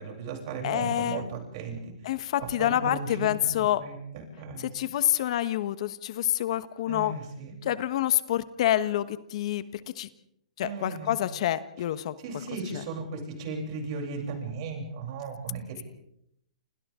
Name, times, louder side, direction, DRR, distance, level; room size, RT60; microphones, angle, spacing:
voice 1, 0.0-1.9 2.4-4.7 6.9-7.5 10.6-11.2 12.2-15.8, right 4 dB, 45° right, 2 dB, 7.9 m, -36 dB
voice 2, 0.6-1.2 2.0-3.8 4.6-7.1 7.6-10.1 10.6-12.1 12.7-12.8, left 12 dB, 55° left, 13 dB, 1.3 m, -27 dB
29.0 x 28.5 x 3.8 m, 0.74 s
hypercardioid pair, 145°, 4 cm